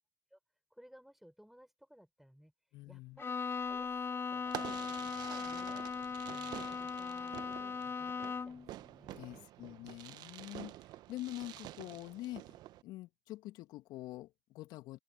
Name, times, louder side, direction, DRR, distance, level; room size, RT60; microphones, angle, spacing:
voice 1, 0.7-2.5 2.9-4.4 4.9-5.9 6.3-9.5, equal, 5° right, 6.1 m, -59 dB
voice 2, 2.7-3.2 9.1-15.0, left 17 dB, 70° left, 2.7 m, -46 dB
Bowed string instrument, 3.2-8.7, left 5 dB, 30° left, 0.4 m, -39 dB
Fireworks, 4.4-12.8, right 15 dB, 70° right, 1.6 m, -48 dB
open air
figure-of-eight pair, 40°, 7 cm